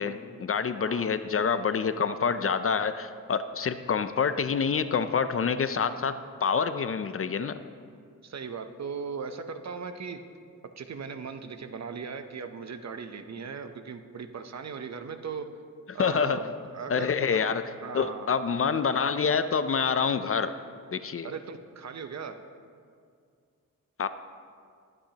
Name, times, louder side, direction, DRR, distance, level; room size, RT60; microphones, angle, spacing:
voice 1, 0.0-6.1 6.4-7.5 15.9-16.4 16.9-17.6 17.9-20.5 20.9-21.3 24.0-24.1, left 6 dB, 45° left, 11 dB, 0.4 m, -27 dB
voice 2, 0.8-1.1 8.2-10.2 10.8-15.5 15.9-17.5 17.8-18.3 21.2-22.4, right 5 dB, 55° right, 8 dB, 0.7 m, -38 dB
21.5 x 8.8 x 2.8 m, 2.2 s
wide cardioid pair, 145°, 33 cm